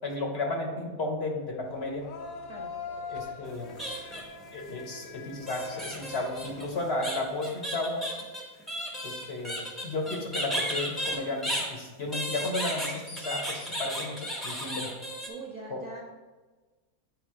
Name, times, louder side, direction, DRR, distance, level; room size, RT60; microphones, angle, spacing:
voice 1, 0.0-2.0 3.1-3.7 4.5-8.0 9.0-9.6 9.8-14.9 15.7-15.8, left 2 dB, 50° left, 1 dB, 1.1 m, -33 dB
sound 1, 1.6-7.4, left 5 dB, 75° left, 1.0 m, -43 dB
sound 2, 3.5-4.5 5.5-11.7 12.1-15.3, equal, ahead, 0.9 m, -34 dB
voice 2, 15.3-16.0, right 3 dB, 35° right, -2 dB, 0.8 m, -42 dB
8.6 x 3.5 x 4.8 m, 1.3 s
omnidirectional pair, 1.5 m